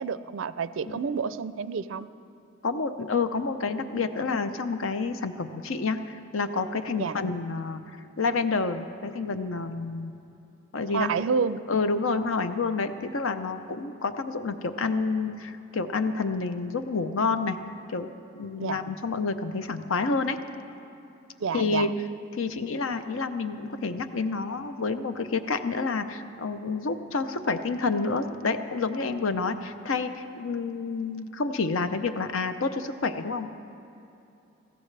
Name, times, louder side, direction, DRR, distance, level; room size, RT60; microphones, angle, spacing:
voice 1, 0.0-2.1 7.0-7.2 10.9-11.6 18.6-18.8 21.4-21.9, right 5 dB, 70° right, 14 dB, 0.4 m, -29 dB
voice 2, 2.6-7.8 8.2-10.1 10.7-11.2 11.7-17.6 17.9-18.1 18.3-20.4 21.5-21.9 22.3-33.5, left 4 dB, 75° left, 9 dB, 0.7 m, -29 dB
21.0 x 15.5 x 3.3 m, 2.8 s
head